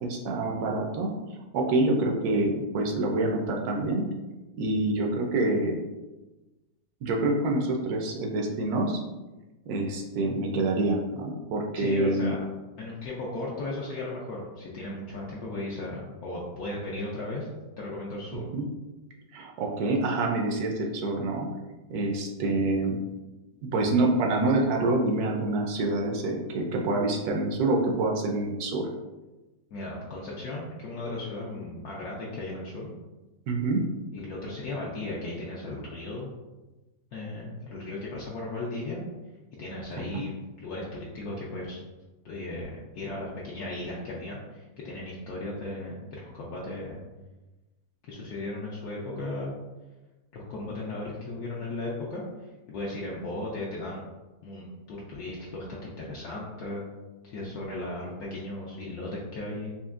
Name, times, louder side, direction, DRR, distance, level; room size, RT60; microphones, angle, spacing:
voice 1, 0.0-1.1 1.5-4.0 4.6-5.8 7.0-9.0 9.7-12.3 18.3-18.6 19.3-21.5 21.9-23.0 23.7-28.9 33.5-33.8 40.1-40.2, right 2 dB, 70° right, 1 dB, 1.0 m, -26 dB
voice 2, 11.7-12.4 12.8-17.5 17.8-18.4 29.7-32.9 34.1-36.3 37.1-39.0 39.6-41.8 42.2-47.0 48.1-49.6 50.3-52.2 52.7-54.1 54.4-56.8 57.2-59.7, left 2 dB, 70° left, -5 dB, 1.1 m, -36 dB
4.3 x 3.0 x 2.4 m, 1.1 s
omnidirectional pair, 1.8 m